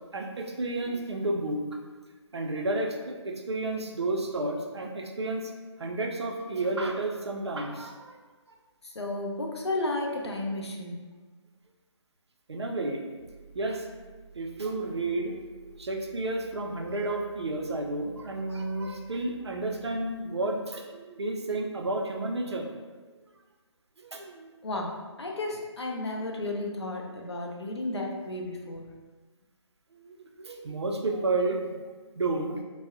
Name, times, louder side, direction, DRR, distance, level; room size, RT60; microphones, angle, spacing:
voice 1, 0.1-1.8 2.3-5.5 5.8-8.1 12.5-13.0 13.5-13.9 14.3-22.7 24.0-24.5 29.9-32.6, right 2 dB, 60° right, 2 dB, 0.4 m, -31 dB
voice 2, 8.8-11.1 24.6-28.9, left 2 dB, 60° left, 0 dB, 0.5 m, -33 dB
Mechanical fan, 13.2-20.2, right 5 dB, ahead, 1.2 m, -52 dB
3.3 x 2.0 x 2.5 m, 1.3 s
figure-of-eight pair, 150°, 15 cm